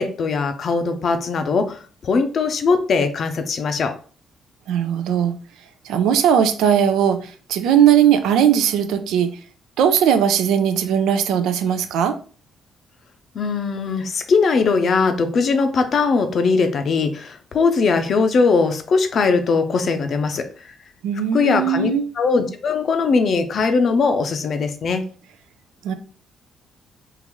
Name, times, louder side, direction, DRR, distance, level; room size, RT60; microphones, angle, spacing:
voice 1, 0.0-3.9 13.3-20.4 21.3-21.9 22.2-25.0, left 4 dB, 55° left, 0.5 m, -20 dB
voice 2, 4.7-5.4 5.8-9.4 9.8-12.2 21.0-22.1 25.8-25.9, right 9 dB, 85° right, 0.4 m, -18 dB
3.8 x 2.5 x 3.0 m
cardioid pair, 90°, 0 cm